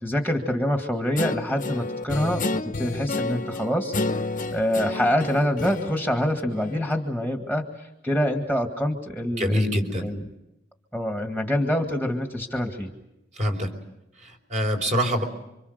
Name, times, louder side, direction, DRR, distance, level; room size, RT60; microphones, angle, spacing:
voice 1, 0.0-3.9 4.5-10.3 10.9-12.9, equal, 5° right, 3 dB, 1.9 m, -26 dB
Guitar, 1.2-7.0, left 2 dB, 45° left, 1.0 m, -30 dB
voice 2, 9.4-10.1 13.3-13.7 14.2-15.2, equal, 40° right, 3 dB, 4.5 m, -25 dB
28.5 x 25.5 x 6.7 m, 0.90 s
head